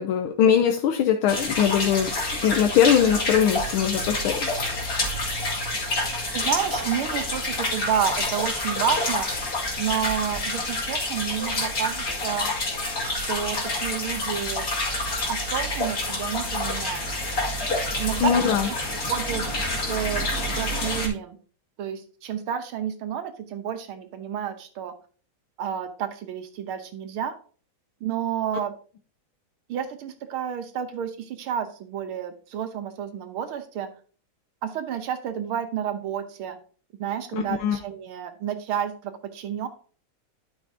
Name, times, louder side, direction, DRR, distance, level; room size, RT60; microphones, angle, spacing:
voice 1, 0.0-2.1 2.4-4.6 18.2-18.7 37.3-37.8, left 8 dB, 85° left, 4 dB, 1.6 m, -21 dB
sound 1, 1.3-21.1, left 2 dB, 45° left, 2.7 m, -28 dB
voice 2, 6.3-9.3 9.8-12.5 13.0-14.6 15.3-17.1 18.0-18.6 19.1-19.4 19.9-21.4 21.8-24.9 25.6-27.3 28.0-28.7 29.7-33.9 34.6-36.6 37.0-39.7, right 8 dB, 85° right, 8 dB, 1.8 m, -30 dB
12.0 x 5.8 x 2.8 m, 0.41 s
omnidirectional pair, 2.3 m